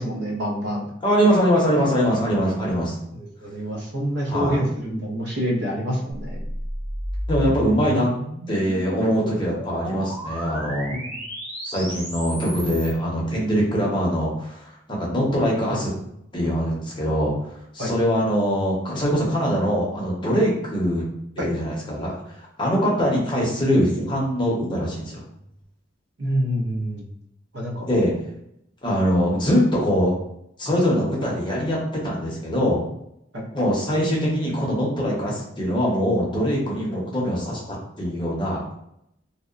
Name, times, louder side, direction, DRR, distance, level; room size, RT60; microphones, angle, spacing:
voice 1, 0.0-0.9 3.1-6.4 10.9-11.1 17.8-17.9 21.4-21.5 26.2-27.0 27.5-27.8 33.3-33.4, equal, 60° right, -1 dB, 0.6 m, -27 dB
voice 2, 1.0-3.0 4.3-4.6 7.3-8.1 8.5-11.0 11.6-15.9 16.3-17.3 17.7-21.0 21.4-22.2 22.6-25.2 27.8-28.1 28.8-30.1 30.6-32.8 33.5-38.7, equal, 25° left, -4 dB, 0.7 m, -22 dB
sound 1, 6.2-13.0, equal, 35° right, 1.3 m, -32 dB
2.8 x 2.0 x 2.4 m, 0.76 s
head